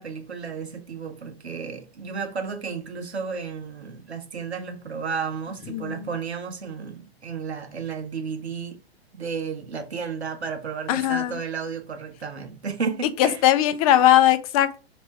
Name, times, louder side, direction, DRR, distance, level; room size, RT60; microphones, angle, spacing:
voice 1, 0.0-8.8 9.1-13.4, right 5 dB, 90° right, 1.0 m, -32 dB
voice 2, 5.7-6.1 10.9-11.4 13.2-14.8, left 12 dB, 35° left, 0.5 m, -19 dB
3.1 x 2.9 x 4.6 m
hypercardioid pair, 110°, 32 cm